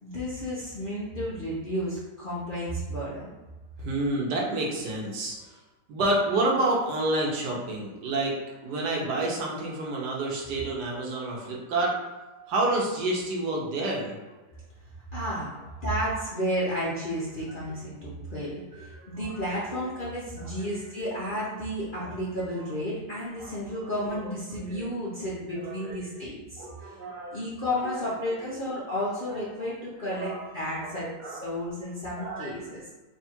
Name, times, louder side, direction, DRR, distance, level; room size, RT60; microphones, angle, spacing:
voice 1, 0.0-3.3 15.1-15.5 15.8-26.9 27.3-32.8, equal, 45° left, -8 dB, 0.7 m, -32 dB
voice 2, 3.8-5.4 5.9-8.3 8.6-12.0 12.3-14.1 18.8-19.1 20.6-21.1 23.4-23.5 23.8-23.9 24.6-24.8 25.6-26.0 26.6-27.4 27.9-28.0 28.4-28.5 28.9-29.0 30.0-30.4 30.9-31.4 32.2-32.7, right 2 dB, 75° right, -2 dB, 1.4 m, -29 dB
3.6 x 2.4 x 4.3 m, 1.2 s
omnidirectional pair, 1.8 m